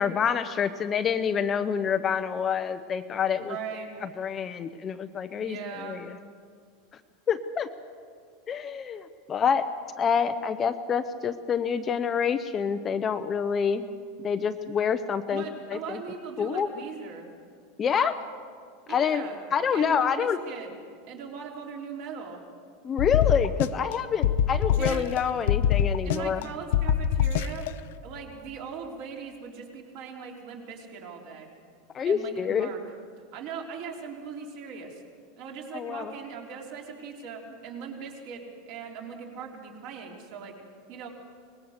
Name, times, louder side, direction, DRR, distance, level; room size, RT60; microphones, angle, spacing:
voice 1, 0.0-3.6 4.0-6.2 7.3-7.7 8.5-9.7 10.0-13.9 14.2-15.4 15.7-16.0 16.4-16.7 17.8-18.2 18.9-20.4 22.8-26.5 31.9-32.7 35.7-36.1, left 7 dB, 20° left, 9 dB, 0.6 m, -27 dB
voice 2, 3.4-3.9 5.4-6.1 15.3-17.3 18.9-19.4 19.7-20.7 21.1-22.4 24.8-25.1 26.0-27.7 28.0-31.5 32.0-32.8 33.3-35.0 35.4-38.4 38.7-40.5 40.9-41.1, right 6 dB, 45° right, 1 dB, 3.7 m, -39 dB
sound 1, 23.0-23.9 24.2-25.2 25.5-26.4 26.7-27.7, left 9 dB, 70° left, 0.7 m, -24 dB
24.5 x 20.5 x 6.6 m, 2.1 s
supercardioid pair, 170°, 0 cm